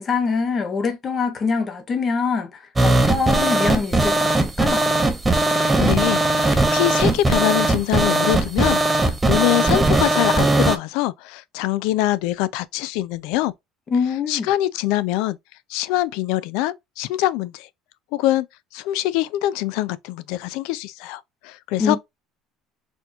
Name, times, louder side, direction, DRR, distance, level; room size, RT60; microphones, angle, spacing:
voice 1, 0.0-4.9 13.9-14.5 21.8-22.0, left 5 dB, 25° left, 0.8 m, -24 dB
sound 1, 2.8-10.8, right 2 dB, 10° right, 0.5 m, -19 dB
voice 2, 5.5-13.5 14.3-15.4 15.7-17.7 18.1-18.5 18.7-22.0, left 15 dB, 75° left, 0.4 m, -24 dB
4.2 x 2.8 x 2.5 m
cardioid pair, 165°, 0 cm